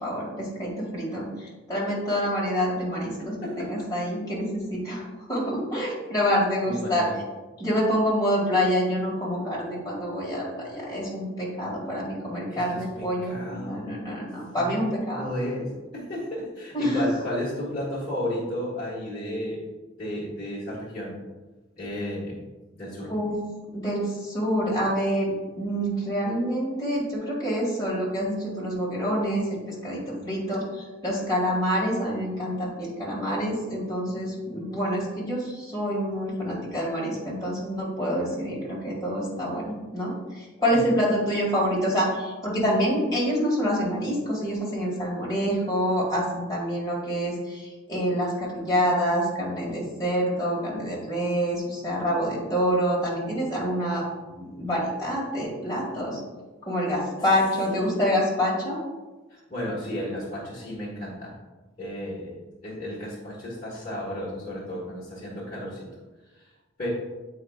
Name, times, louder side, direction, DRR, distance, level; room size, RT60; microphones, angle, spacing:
voice 1, 0.0-7.1 7.6-15.3 16.7-17.1 23.1-23.3 23.7-56.2 56.6-58.8, equal, 20° left, -5 dB, 2.0 m, -27 dB
voice 2, 3.4-3.9 6.7-7.1 12.5-12.6 13.0-13.9 14.5-19.6 20.0-21.2 21.8-22.4 22.7-23.1 57.7-58.0 59.3-61.4 61.8-65.9 66.8-66.9, left 1 dB, 35° left, -9 dB, 1.6 m, -33 dB
8.4 x 4.7 x 2.4 m, 1.2 s
head